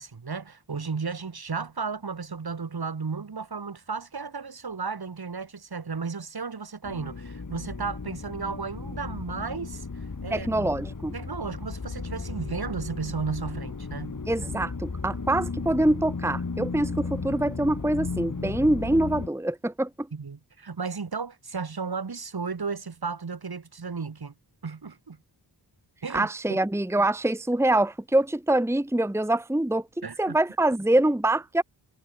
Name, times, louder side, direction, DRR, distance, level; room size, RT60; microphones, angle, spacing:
voice 1, 0.0-9.9 10.2-10.8 11.1-14.2 20.1-24.3 24.6-25.2 26.0-26.6 30.0-30.4, right 5 dB, 55° right, 3.1 m, -34 dB
sound 1, 6.8-19.3, left 4 dB, 45° left, 3.4 m, -35 dB
voice 2, 10.3-11.1 14.3-20.1 26.1-31.6, right 1 dB, 5° right, 1.2 m, -25 dB
cardioid pair, 60°, 45 cm